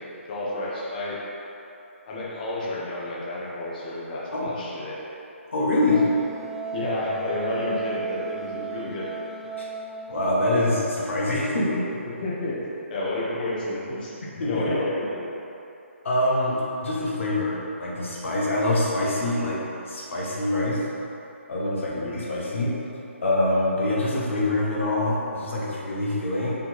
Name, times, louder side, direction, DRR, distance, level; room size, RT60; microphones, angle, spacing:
voice 1, 0.3-1.2 2.1-4.9 6.7-9.1 12.0-12.5 12.9-14.1 14.5-15.3 22.0-22.2, left 2 dB, 40° left, -6 dB, 1.5 m, -30 dB
voice 2, 5.5-6.1 9.6-9.7 10.1-12.0 14.2-14.7 16.0-19.6 19.9-20.8 21.5-22.8 23.2-26.6, left 1 dB, 65° left, -5 dB, 1.5 m, -25 dB
Wind instrument woodwind instrument, 5.9-10.6, right 5 dB, ahead, 0.4 m, -35 dB
5.5 x 3.9 x 4.4 m, 2.9 s
figure-of-eight pair, 145°, 7 cm